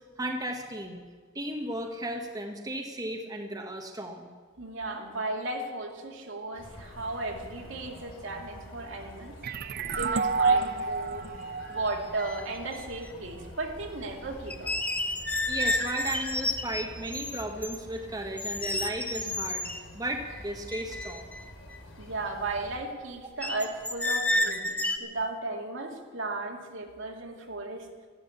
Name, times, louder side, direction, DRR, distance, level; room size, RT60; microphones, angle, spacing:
voice 1, 0.2-1.0 1.3-4.3 15.5-19.6 19.9-21.4, right 1 dB, 20° right, 2 dB, 1.3 m, -35 dB
voice 2, 4.6-9.4 10.0-11.3 11.7-14.7 22.0-27.9, right 2 dB, 70° right, 1 dB, 2.4 m, -35 dB
sound 1, 6.5-22.8, left 1 dB, 80° left, 3.1 m, -47 dB
sound 2, 9.4-12.9, right 4 dB, 50° right, 0.6 m, -29 dB
sound 3, 11.9-12.0 12.2-13.1 14.5-17.8 18.4-19.8 20.3-20.4 20.7-21.8 23.4-25.0, left 1 dB, 5° left, 0.9 m, -31 dB
13.5 x 12.5 x 8.4 m, 1.5 s
head